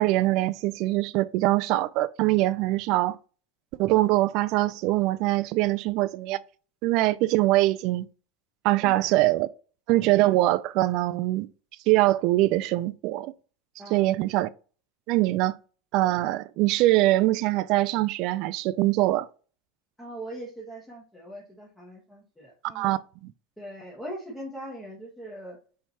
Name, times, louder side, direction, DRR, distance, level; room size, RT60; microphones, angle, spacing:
voice 1, 0.0-3.2 3.8-6.4 6.8-8.0 8.6-9.5 9.9-11.5 11.9-13.3 13.9-14.5 15.1-15.6 15.9-19.3 22.7-23.3, right 17 dB, 55° right, 0.3 m, -23 dB
voice 2, 13.8-14.1 20.0-23.0 23.6-25.6, right 1 dB, 10° left, 1.3 m, -41 dB
5.5 x 3.2 x 2.8 m
supercardioid pair, 115°, 0 cm